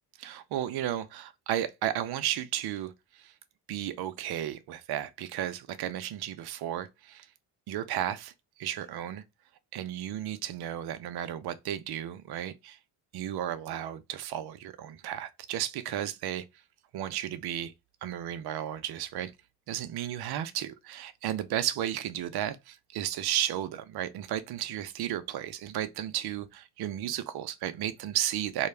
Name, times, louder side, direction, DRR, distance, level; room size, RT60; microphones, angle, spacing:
voice 1, 0.2-2.9 3.2-3.3 3.7-7.3 7.7-8.3 8.6-9.2 9.7-12.8 13.1-16.4 16.9-17.7 18.0-19.3 19.7-28.7, right 11 dB, 50° right, 0.5 m, -33 dB
2.2 x 2.1 x 3.1 m
supercardioid pair, 60°, 49 cm